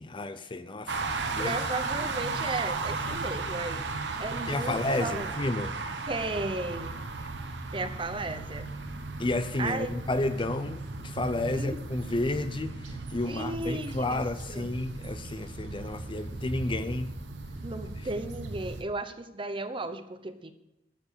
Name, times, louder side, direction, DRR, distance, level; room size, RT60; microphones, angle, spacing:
voice 1, 0.0-1.6 4.5-5.7 9.2-17.1, left 2 dB, 30° left, 11 dB, 0.6 m, -31 dB
sound 1, 0.9-18.8, right 3 dB, 75° right, 1.1 m, -36 dB
voice 2, 1.4-5.3 6.1-6.9 7.7-8.7 9.6-9.9 11.5-11.8 13.2-14.7 17.6-20.5, right 2 dB, 30° right, 10 dB, 0.8 m, -35 dB
13.5 x 7.0 x 6.7 m, 0.94 s
head